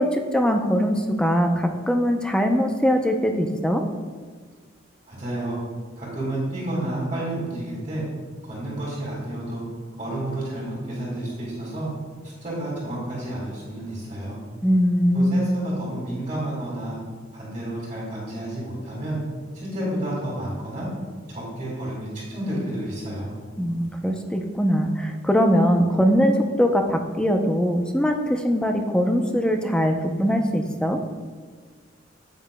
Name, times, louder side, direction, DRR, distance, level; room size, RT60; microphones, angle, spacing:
voice 1, 0.0-3.8 14.6-15.5 23.6-31.0, equal, 5° left, 4 dB, 0.5 m, -21 dB
voice 2, 5.1-5.6 6.0-8.0 8.4-9.6 10.0-11.9 12.4-14.4 15.1-17.0 17.3-19.2 19.5-20.9 21.3-23.3, right 1 dB, 35° right, -7 dB, 2.0 m, -30 dB
9.5 x 8.2 x 2.2 m, 1.5 s
head